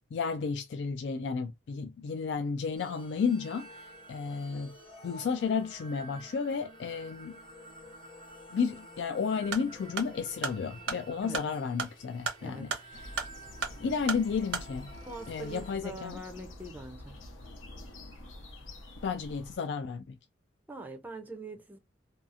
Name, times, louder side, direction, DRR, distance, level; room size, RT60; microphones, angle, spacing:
voice 1, 0.1-4.7 5.0-7.4 8.5-13.2 13.8-14.9 15.3-16.2 19.0-20.2, left 5 dB, 65° left, 0.3 m, -32 dB
sound 1, 2.8-15.7, right 1 dB, 25° left, 0.8 m, -51 dB
sound 2, 9.4-14.7, right 5 dB, 70° right, 0.7 m, -37 dB
voice 2, 12.4-12.7 15.0-17.2 20.7-21.8, right 2 dB, 10° right, 0.4 m, -43 dB
sound 3, 12.9-19.6, left 1 dB, 90° left, 0.7 m, -47 dB
2.7 x 2.3 x 2.3 m
head